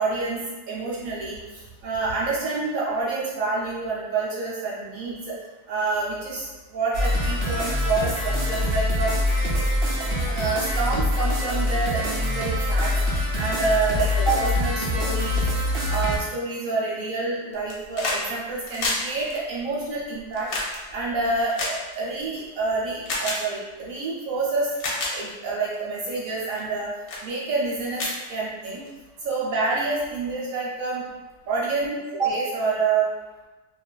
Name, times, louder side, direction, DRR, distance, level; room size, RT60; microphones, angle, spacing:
voice 1, 0.0-5.3 5.7-9.1 10.2-12.9 13.4-15.4 15.9-20.5 20.9-24.7 25.1-26.9 27.2-28.9 29.2-31.0 31.5-33.1, right 3 dB, 65° right, -6 dB, 0.9 m, -27 dB
sound 1, 6.9-16.2, left 1 dB, 85° right, 0.5 m, -24 dB
sound 2, 17.5-18.2 18.5-22.4 23.0-23.4 24.2-24.3 24.7-25.1 25.7-26.0 26.5-26.8 27.1-27.2 27.6-27.7 27.9-28.9 30.0-30.1, left 2 dB, 70° left, 1.0 m, -30 dB
2.7 x 2.4 x 2.2 m, 1.2 s
omnidirectional pair, 1.8 m